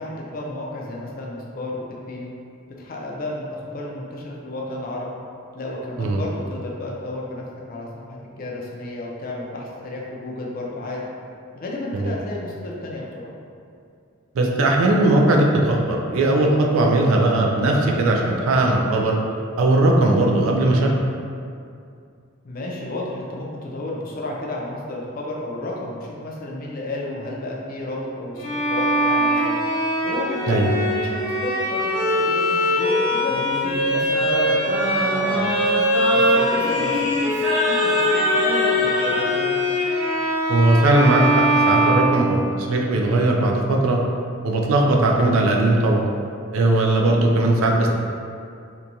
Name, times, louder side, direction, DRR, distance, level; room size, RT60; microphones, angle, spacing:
voice 1, 0.0-2.3 2.8-5.1 5.5-7.9 8.4-11.0 11.5-13.3 22.4-29.6 30.0-31.9 32.2-37.3 37.6-39.5, left 2 dB, 45° left, -2 dB, 0.4 m, -32 dB
voice 2, 14.3-19.2 19.6-20.9 30.5-30.7 40.5-44.0 44.4-46.0 46.5-47.9, right 2 dB, 75° right, 0 dB, 0.4 m, -18 dB
Bowed string instrument, 28.4-42.7, equal, 85° left, 0.8 m, -22 dB
Singing, 33.3-39.3, left 1 dB, 60° right, 1.3 m, -25 dB
2.9 x 2.2 x 2.6 m, 2.4 s
head